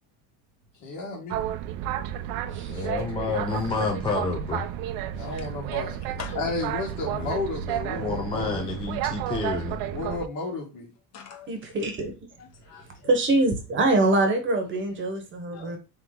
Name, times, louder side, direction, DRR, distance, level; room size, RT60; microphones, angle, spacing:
voice 1, 0.8-1.4 2.7-2.9 3.3-3.4 5.2-6.0 6.3-8.6 9.9-10.9, left 3 dB, 55° left, 1.4 m, -32 dB
Boat Water vehicle, 1.3-10.3, right 11 dB, 75° right, 0.5 m, -32 dB
voice 2, 2.7-4.7 7.1-7.3 7.9-9.9, left 4 dB, 15° left, 0.4 m, -29 dB
voice 3, 5.1-5.5 5.8-6.4 11.1-11.5 12.4-13.1 15.5-15.7, left 7 dB, 40° left, 1.0 m, -44 dB
voice 4, 11.5-12.1 13.0-15.8, right 2 dB, 30° right, 1.0 m, -24 dB
3.6 x 3.0 x 3.7 m
cardioid pair, 150°, 39 cm